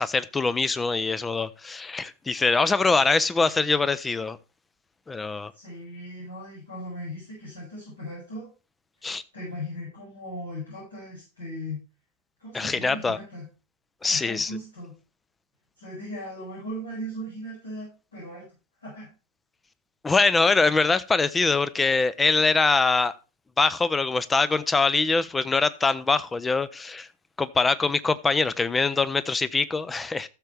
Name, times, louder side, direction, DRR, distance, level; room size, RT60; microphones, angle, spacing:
voice 1, 0.0-4.4 5.1-5.5 9.0-9.2 12.5-13.2 14.0-14.5 20.0-23.1 23.6-27.1 27.4-30.3, left 4 dB, 15° left, 0.6 m, -23 dB
voice 2, 5.5-8.5 9.3-11.8 12.4-13.5 14.1-14.9 15.8-18.5 18.8-19.1, equal, 75° left, 6.9 m, -38 dB
14.5 x 6.6 x 3.4 m
figure-of-eight pair, 90°, 0 cm